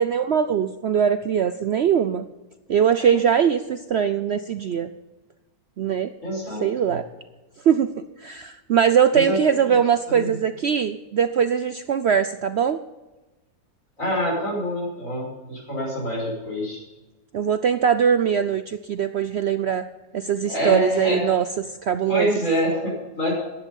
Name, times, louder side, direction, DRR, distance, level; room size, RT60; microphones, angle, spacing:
voice 1, 0.0-2.3 2.7-4.9 5.8-6.1 6.6-7.1 7.6-7.9 8.2-12.8 17.3-19.9 20.1-22.3, right 8 dB, 75° right, 11 dB, 0.6 m, -21 dB
voice 2, 6.2-7.0 9.1-9.4 9.7-9.8 10.1-10.4 14.0-16.8 20.4-21.2 22.1-23.3, equal, 50° left, -4 dB, 5.9 m, -26 dB
14.5 x 10.5 x 5.4 m, 1.1 s
omnidirectional pair, 1.7 m